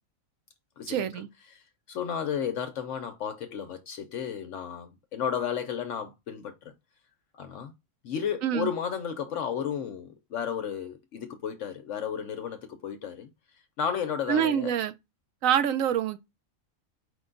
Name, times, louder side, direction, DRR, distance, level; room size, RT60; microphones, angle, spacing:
voice 1, 0.9-1.3 8.4-8.7 14.3-14.9 15.4-16.2, right 9 dB, 80° right, 1.0 m, -26 dB
voice 2, 1.5-6.7 7.3-7.7 8.0-13.3 13.8-14.7, left 8 dB, 70° left, 0.9 m, -33 dB
5.0 x 2.2 x 3.7 m
omnidirectional pair, 1.4 m